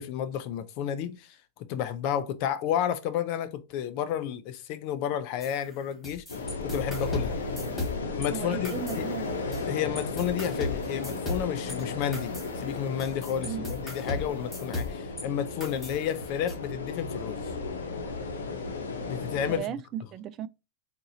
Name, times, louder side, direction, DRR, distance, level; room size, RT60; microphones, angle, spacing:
voice 1, 0.0-7.4 8.2-9.1 9.7-17.5 19.1-19.7, left 9 dB, 55° left, 0.5 m, -31 dB
sound 1, 5.4-8.3 8.6-9.7 10.0-15.3 15.6-16.6, left 2 dB, 10° left, 1.5 m, -37 dB
sound 2, 6.3-19.6, left 3 dB, 90° left, 0.8 m, -35 dB
voice 2, 8.3-9.4 13.4-13.7 19.5-20.5, right 10 dB, 35° right, 0.3 m, -36 dB
3.9 x 2.5 x 2.7 m
hypercardioid pair, 115°, 0 cm